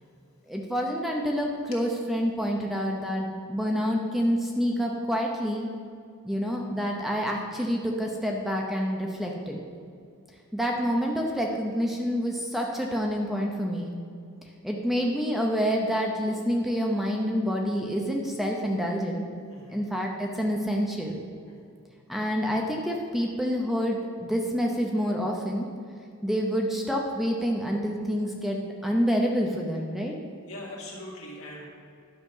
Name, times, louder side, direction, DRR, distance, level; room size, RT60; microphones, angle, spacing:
voice 1, 0.5-5.7 6.2-9.6 10.5-13.9 14.6-19.2 19.7-21.2 22.1-25.7 26.2-30.1, equal, ahead, 0 dB, 0.6 m, -27 dB
voice 2, 19.5-19.8 21.5-21.7 30.5-31.6, left 1 dB, 70° left, -3 dB, 2.2 m, -41 dB
11.0 x 6.0 x 5.4 m, 2.3 s
head